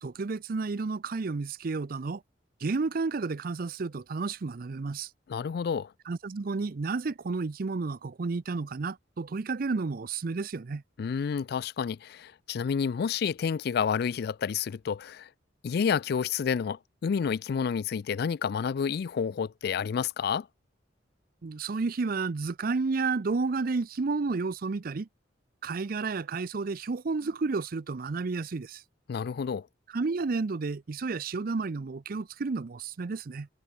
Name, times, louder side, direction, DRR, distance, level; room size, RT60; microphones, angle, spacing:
voice 1, 0.0-2.2 2.6-5.1 6.1-10.8 21.4-25.1 25.6-28.8 29.9-33.5, right 4 dB, 50° right, 0.5 m, -31 dB
voice 2, 5.3-5.9 11.0-15.3 15.6-20.5 29.1-29.7, left 6 dB, 55° left, 0.3 m, -29 dB
head